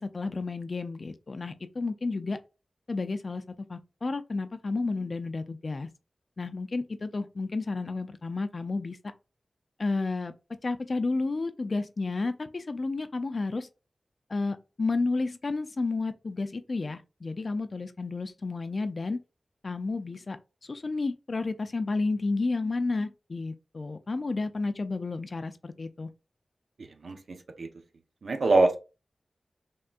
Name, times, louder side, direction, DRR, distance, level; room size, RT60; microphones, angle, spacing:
voice 1, 0.0-2.4 2.9-5.9 6.4-9.1 9.8-10.3 10.6-13.7 14.3-19.2 19.6-20.4 20.6-26.1, left 3 dB, 55° left, 0.4 m, -31 dB
voice 2, 26.8-27.7 28.2-28.8, right 2 dB, 80° right, 0.5 m, -25 dB
3.5 x 2.2 x 2.4 m
wide cardioid pair, 70°, 0 cm